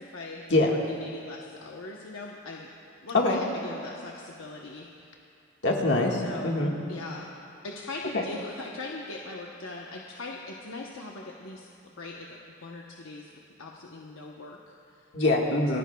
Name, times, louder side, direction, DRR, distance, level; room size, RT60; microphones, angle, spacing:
voice 1, 0.0-2.7 3.0-5.3 6.2-6.6 6.9-7.3 7.6-13.3 13.6-15.1 15.7-15.8, left 2 dB, 85° left, -1 dB, 0.9 m, -41 dB
voice 2, 5.6-6.7 8.1-8.2 15.1-15.8, left 2 dB, 60° left, 0 dB, 1.6 m, -24 dB
27.5 x 14.5 x 2.3 m, 2.6 s
head